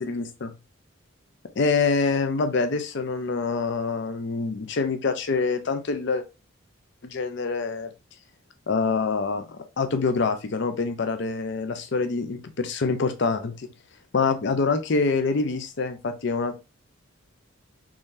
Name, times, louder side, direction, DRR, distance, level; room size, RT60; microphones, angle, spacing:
voice 1, 0.0-0.5 1.6-6.2 7.0-7.9 8.7-13.7 14.1-16.6, left 4 dB, 55° left, 8 dB, 0.5 m, -25 dB
3.7 x 3.1 x 2.6 m, 0.28 s
head